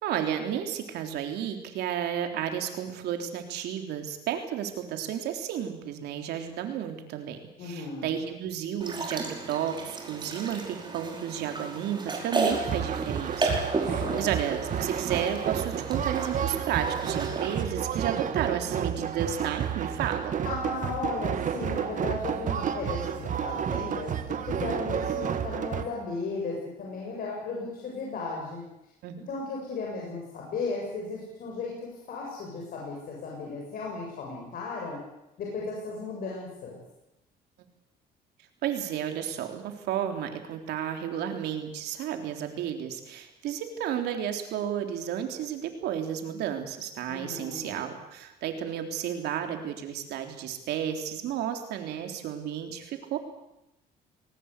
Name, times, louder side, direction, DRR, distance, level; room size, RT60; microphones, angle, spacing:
voice 1, 0.0-20.4 29.0-29.2 38.6-53.2, right 9 dB, 80° right, 5 dB, 3.6 m, -32 dB
voice 2, 7.6-8.1 14.0-14.3 20.4-28.6 29.3-35.0 35.4-36.8 47.1-47.7, left 3 dB, 60° left, -2 dB, 7.3 m, -35 dB
sound 1, 8.8-17.6, right 3 dB, 25° right, 5.1 m, -33 dB
sound 2, 12.5-25.8, right 8 dB, 50° right, 1.9 m, -31 dB
20.5 x 19.5 x 8.4 m, 0.90 s
cardioid pair, 110°, 17 cm